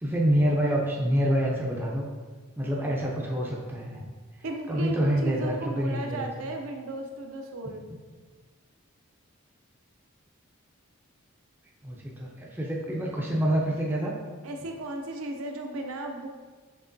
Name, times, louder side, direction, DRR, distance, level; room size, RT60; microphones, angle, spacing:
voice 1, 0.0-2.1 2.6-4.1 4.7-6.3 11.8-14.2, equal, 10° right, -3 dB, 0.4 m, -27 dB
voice 2, 4.4-7.8 14.4-16.3, right 1 dB, 70° right, 3 dB, 0.5 m, -35 dB
6.7 x 2.9 x 2.6 m, 1.4 s
head